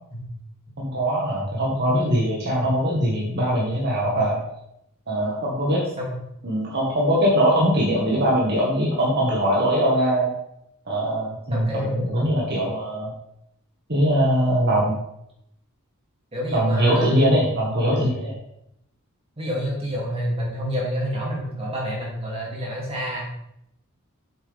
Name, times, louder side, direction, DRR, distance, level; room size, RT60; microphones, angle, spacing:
voice 1, 0.8-4.4 5.1-5.8 6.4-10.3 10.9-11.7 12.0-13.1 13.9-15.0 16.5-18.3, equal, 50° right, -5 dB, 1.9 m, -21 dB
voice 2, 11.5-12.4 16.3-17.4 17.9-18.1 19.4-23.2, equal, 25° right, -4 dB, 2.9 m, -28 dB
8.1 x 7.3 x 3.6 m, 0.78 s
head